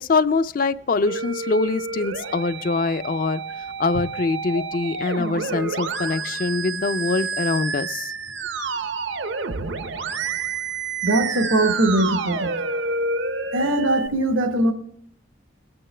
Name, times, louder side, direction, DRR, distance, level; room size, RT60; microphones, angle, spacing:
voice 1, 0.0-8.1, left 3 dB, 45° left, 14 dB, 0.4 m, -24 dB
Musical instrument, 1.1-14.1, right 4 dB, 65° right, 0.7 m, -29 dB
voice 2, 11.0-12.5 13.5-14.7, right 1 dB, 90° right, 7 dB, 1.1 m, -21 dB
20.5 x 8.8 x 3.3 m, 0.66 s
head